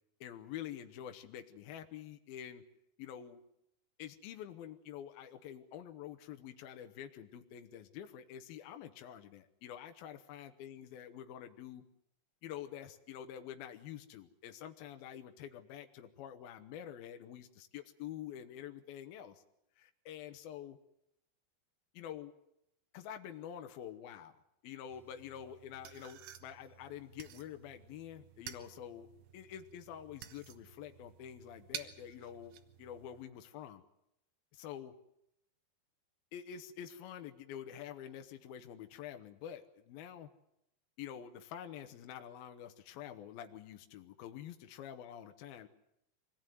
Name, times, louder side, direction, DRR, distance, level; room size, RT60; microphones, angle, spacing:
voice 1, 0.2-2.6 3.0-3.4 4.0-11.8 12.4-19.4 19.8-20.8 21.9-22.3 22.9-24.4 24.6-29.1 29.3-32.5 32.8-33.8 34.5-34.9 36.3-40.3 41.0-45.7, left 10 dB, 75° left, 6 dB, 2.9 m, -47 dB
sound 1, 24.9-33.3, right 11 dB, 75° right, 3.0 m, -52 dB
24.5 x 17.5 x 9.4 m, 0.80 s
omnidirectional pair, 4.5 m